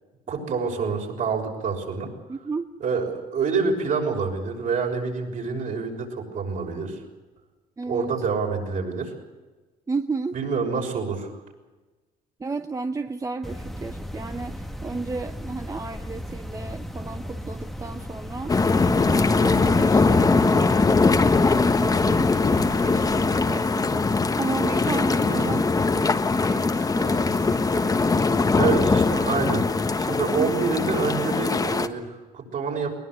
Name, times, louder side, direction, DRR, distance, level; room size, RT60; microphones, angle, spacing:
voice 1, 0.3-2.1 2.8-7.0 7.9-9.1 10.3-11.3 25.3-25.5 28.6-33.0, right 5 dB, 55° right, 2 dB, 6.4 m, -27 dB
voice 2, 2.3-2.7 7.8-8.1 9.9-10.3 12.4-18.6 19.1-20.8 21.2-28.9 30.4-30.5, right 3 dB, 20° right, 8 dB, 0.9 m, -33 dB
sound 1, 13.4-23.4, equal, ahead, 1.3 m, -36 dB
sound 2, 18.5-31.9, left 4 dB, 20° left, 1.4 m, -21 dB
21.0 x 20.5 x 8.1 m, 1.2 s
cardioid pair, 110°, 17 cm